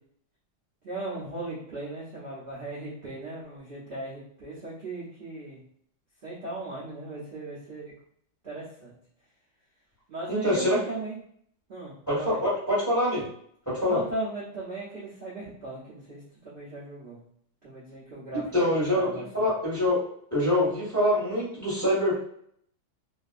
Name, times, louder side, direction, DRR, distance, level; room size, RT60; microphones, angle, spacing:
voice 1, 0.8-5.6 6.2-7.9 8.4-8.9 10.1-11.2 11.7-12.4 13.9-17.2 17.6-19.5, right 2 dB, 60° right, -10 dB, 0.5 m, -37 dB
voice 2, 10.3-10.8 12.1-13.2 13.6-14.0 18.5-20.0 20.3-22.2, left 1 dB, 10° left, -8 dB, 1.0 m, -25 dB
2.9 x 2.5 x 2.4 m, 0.68 s
omnidirectional pair, 2.1 m